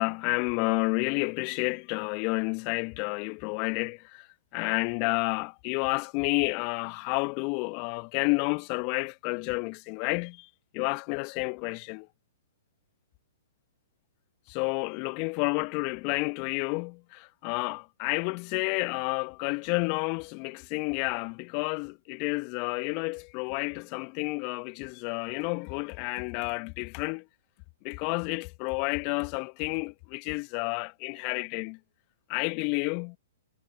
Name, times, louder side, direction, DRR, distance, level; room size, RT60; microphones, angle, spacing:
voice 1, 0.0-4.3 4.5-12.1 14.5-27.3 27.8-31.8 32.3-33.2, left 33 dB, 35° left, 1.6 m, -30 dB
figure-of-eight pair, 115°, 0 cm